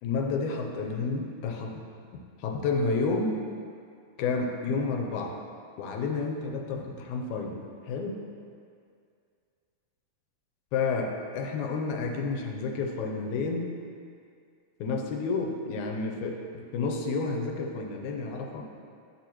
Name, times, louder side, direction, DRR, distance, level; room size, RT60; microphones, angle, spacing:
voice 1, 0.0-1.8 2.4-3.4 4.2-5.4 5.8-8.3 10.7-13.7 14.8-18.6, left 4 dB, 85° left, 3 dB, 2.1 m, -30 dB
9.5 x 6.5 x 2.9 m, 2.3 s
omnidirectional pair, 3.4 m